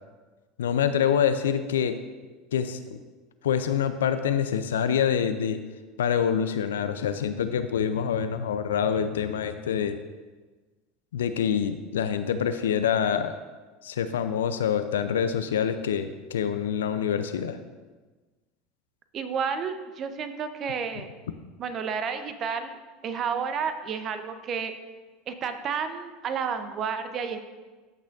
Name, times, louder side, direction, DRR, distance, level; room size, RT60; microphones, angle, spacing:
voice 1, 0.6-2.0 2.5-3.0 3.4-5.6 6.0-10.0 11.1-13.4 13.8-17.6, left 8 dB, 75° left, 10 dB, 0.5 m, -26 dB
voice 2, 19.1-21.1 21.6-22.8 23.0-24.7 25.3-27.5, right 6 dB, 40° right, 9 dB, 0.8 m, -31 dB
14.0 x 6.3 x 2.6 m, 1.3 s
hypercardioid pair, 75°, 0 cm